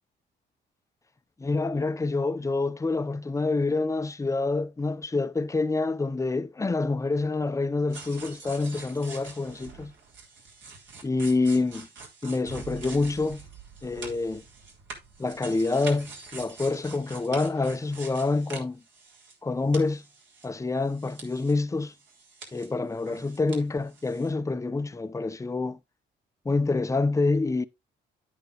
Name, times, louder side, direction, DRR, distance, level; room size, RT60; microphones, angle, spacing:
voice 1, 1.4-9.9 11.0-11.9 12.2-13.4 13.8-14.4 15.2-18.8 19.4-20.0 20.4-21.9 22.5-25.8 26.4-27.6, left 3 dB, 15° left, 0.7 m, -27 dB
sound 1, 7.9-19.5 19.7-21.6 21.9-23.6 23.9-24.3, right 4 dB, 70° right, 3.6 m, -45 dB
10.0 x 9.1 x 2.4 m
cardioid pair, 90°, 20 cm